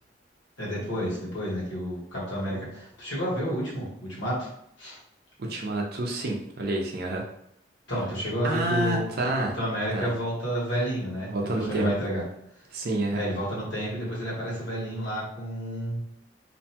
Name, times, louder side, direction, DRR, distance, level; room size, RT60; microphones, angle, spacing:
voice 1, 0.6-4.5 4.8-5.0 5.4-5.5 7.9-9.0 9.5-12.2 13.1-16.0, equal, 75° left, -6 dB, 1.3 m, -30 dB
voice 2, 5.4-7.2 8.4-9.5 9.9-10.1 11.3-11.9 12.7-13.2, right 2 dB, 55° right, 0 dB, 0.6 m, -28 dB
2.6 x 2.3 x 2.8 m, 0.72 s
head